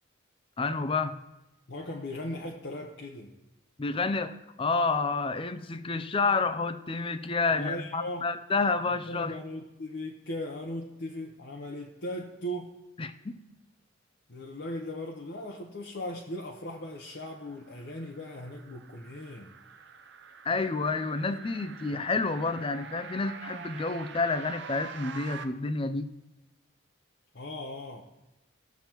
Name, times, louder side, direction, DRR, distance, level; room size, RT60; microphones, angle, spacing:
voice 1, 0.6-1.2 3.8-9.3 13.0-13.3 20.5-26.1, left 3 dB, 25° left, 11 dB, 0.4 m, -29 dB
voice 2, 1.7-3.3 7.5-8.3 9.1-12.7 14.3-19.5 27.3-28.0, left 1 dB, 55° left, 0 dB, 0.8 m, -38 dB
sound 1, 17.1-25.4, right 6 dB, 55° right, 0.6 m, -46 dB
16.5 x 7.0 x 3.0 m, 1.0 s
head